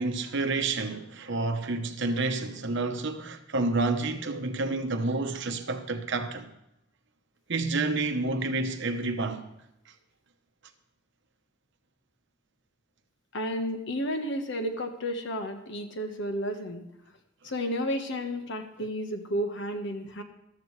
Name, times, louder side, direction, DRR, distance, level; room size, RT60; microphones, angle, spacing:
voice 1, 0.0-6.5 7.5-9.5, right 3 dB, 65° right, 1.1 m, -29 dB
voice 2, 13.3-16.8 17.4-20.2, equal, 65° left, 1.3 m, -32 dB
14.0 x 12.5 x 3.3 m
head